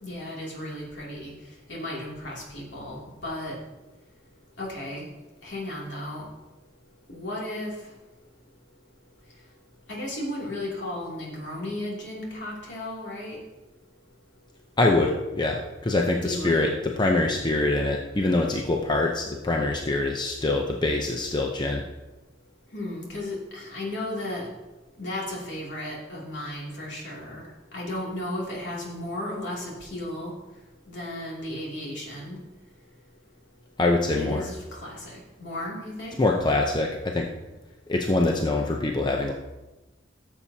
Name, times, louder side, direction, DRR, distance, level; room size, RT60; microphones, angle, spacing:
voice 1, 0.0-1.3 1.7-3.6 4.6-5.1 5.4-6.2 7.1-7.7 9.9-13.4 16.2-16.7 22.7-24.5 25.0-30.3 30.9-32.4 34.1-36.2, left 1 dB, 65° left, -4 dB, 2.7 m, -34 dB
voice 2, 14.8-21.8 33.8-34.4 36.2-37.3 37.9-39.3, left 2 dB, 25° left, 1 dB, 0.6 m, -24 dB
14.5 x 7.3 x 2.8 m, 1.1 s
head